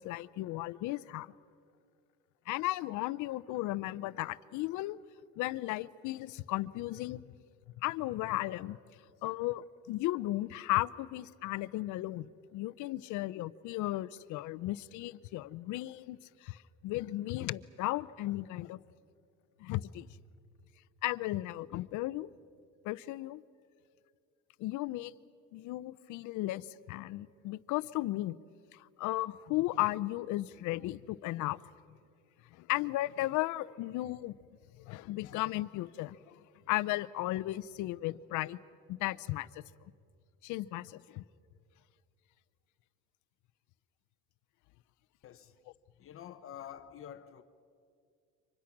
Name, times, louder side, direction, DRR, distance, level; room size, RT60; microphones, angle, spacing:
voice 1, 0.0-1.3 2.5-5.0 5.4-7.2 7.8-8.8 9.2-16.6 16.8-18.8 19.6-20.1 21.0-22.3 22.8-23.4 24.6-25.1 25.5-28.4 28.7-31.6 32.6-34.3 34.8-36.4 36.7-38.6 38.9-39.6 40.4-41.2, left 17 dB, 65° left, 0.7 m, -35 dB
voice 2, 46.0-47.4, left 10 dB, 45° left, 1.0 m, -47 dB
29.5 x 25.5 x 6.0 m
cardioid pair, 125°, 32 cm